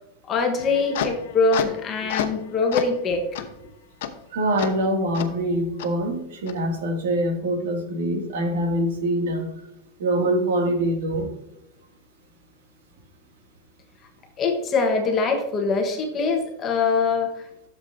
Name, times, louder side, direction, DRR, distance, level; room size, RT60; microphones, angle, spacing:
voice 1, 0.2-3.5 14.4-17.7, left 4 dB, 20° left, 3 dB, 1.2 m, -23 dB
sound 1, 0.6-2.4 2.7-3.0 3.4-3.5 4.0-4.1 4.6-4.7 5.1-5.3 5.8-5.9 6.5-6.6, left 9 dB, 70° left, 1.0 m, -30 dB
voice 2, 4.3-9.5 10.0-11.3, right 1 dB, 85° right, 3 dB, 2.2 m, -24 dB
12.5 x 7.2 x 2.6 m, 0.85 s
supercardioid pair, 170°, 0 cm